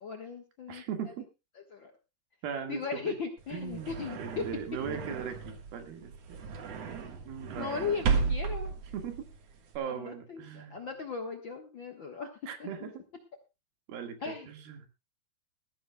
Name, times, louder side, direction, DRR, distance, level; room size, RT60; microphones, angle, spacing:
voice 1, 0.0-0.8 1.7-1.9 2.7-4.4 6.8-7.0 7.5-8.7 9.9-12.3 12.6-12.9 14.2-14.5, left 5 dB, 75° left, 3 dB, 1.1 m, -37 dB
voice 2, 0.7-1.3 2.4-3.2 3.5-6.4 7.3-7.7 8.9-9.3 9.8-10.8 12.5-13.0 13.9-14.9, right 7 dB, 75° right, 6 dB, 3.7 m, -39 dB
sound 1, 3.4-9.8, right 5 dB, 55° right, 2.1 m, -34 dB
20.0 x 14.0 x 2.3 m, 0.26 s
omnidirectional pair, 4.4 m